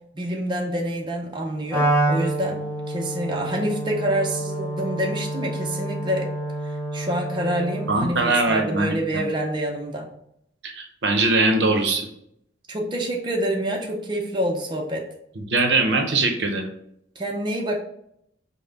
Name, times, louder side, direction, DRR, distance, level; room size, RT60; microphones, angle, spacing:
voice 1, 0.1-6.3 6.9-10.1 12.7-15.1 17.2-17.8, right 1 dB, 25° right, 0 dB, 0.6 m, -27 dB
Wind instrument woodwind instrument, 1.7-8.1, right 1 dB, 15° left, 1.4 m, -27 dB
voice 2, 7.9-9.2 10.6-12.1 15.4-16.7, right 2 dB, 70° right, 4 dB, 0.7 m, -21 dB
5.3 x 2.1 x 3.8 m, 0.73 s
head